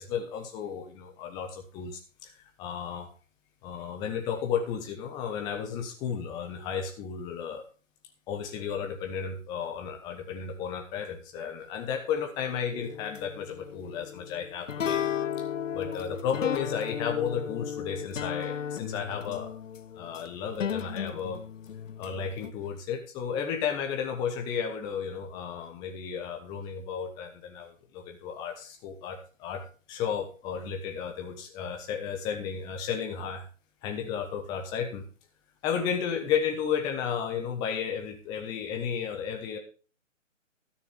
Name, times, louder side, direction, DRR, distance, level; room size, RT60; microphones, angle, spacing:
voice 1, 0.0-3.1 3.6-7.6 8.3-15.0 15.4-15.5 15.7-19.5 19.9-21.4 22.0-33.5 33.8-35.0 35.6-39.6, left 7 dB, 10° left, 3 dB, 1.1 m, -33 dB
sound 1, 12.7-22.5, left 8 dB, 70° left, 0.6 m, -35 dB
13.0 x 6.4 x 5.6 m, 0.37 s
figure-of-eight pair, 145°, 39 cm